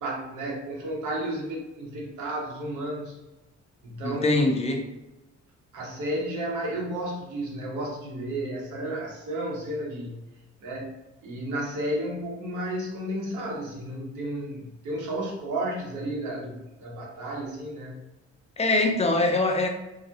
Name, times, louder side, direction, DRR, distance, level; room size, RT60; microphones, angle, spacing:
voice 1, 0.0-3.2 3.8-4.4 5.7-10.2 10.6-10.9 11.2-18.0, right 1 dB, 80° right, -2 dB, 0.8 m, -32 dB
voice 2, 4.0-4.9 18.6-19.7, left 2 dB, 20° left, 2 dB, 0.4 m, -23 dB
2.2 x 2.0 x 2.7 m, 0.96 s
cardioid pair, 90°, 30 cm